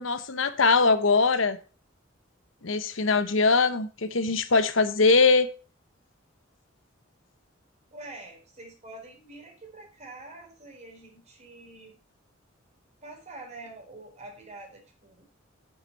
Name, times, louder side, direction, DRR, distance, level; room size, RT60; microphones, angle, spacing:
voice 1, 0.0-1.6 2.6-5.5, left 4 dB, 75° left, 1.0 m, -22 dB
voice 2, 7.9-12.0 13.0-15.2, right 2 dB, 35° right, 4.0 m, -46 dB
9.3 x 8.0 x 4.3 m
head